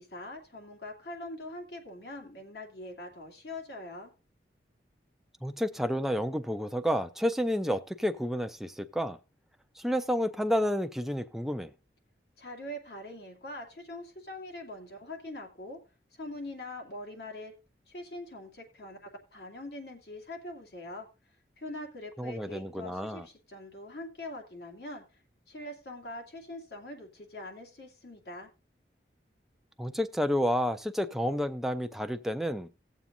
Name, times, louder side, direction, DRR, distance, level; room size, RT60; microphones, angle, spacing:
voice 1, 0.0-4.1 12.4-15.8 16.1-17.5 17.9-21.1 21.6-25.0 25.5-28.5, left 1 dB, 70° left, 2.5 m, -43 dB
voice 2, 5.4-9.2 9.8-11.7 22.2-23.3 29.8-32.7, equal, ahead, 0.5 m, -30 dB
18.0 x 7.3 x 2.6 m
head